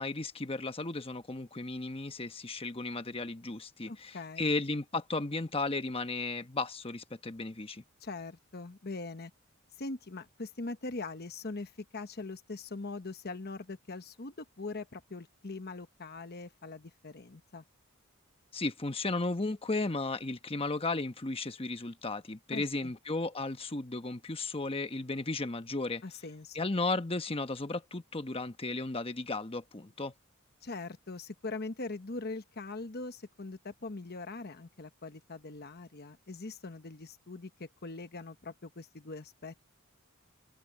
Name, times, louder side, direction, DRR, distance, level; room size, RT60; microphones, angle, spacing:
voice 1, 0.0-7.8 18.5-26.0 26.5-30.1, left 3 dB, 25° left, 1.1 m, -34 dB
voice 2, 3.9-4.5 8.0-9.3 9.8-17.6 22.5-22.9 26.0-26.6 30.6-39.7, left 3 dB, 45° left, 1.1 m, -42 dB
open air
head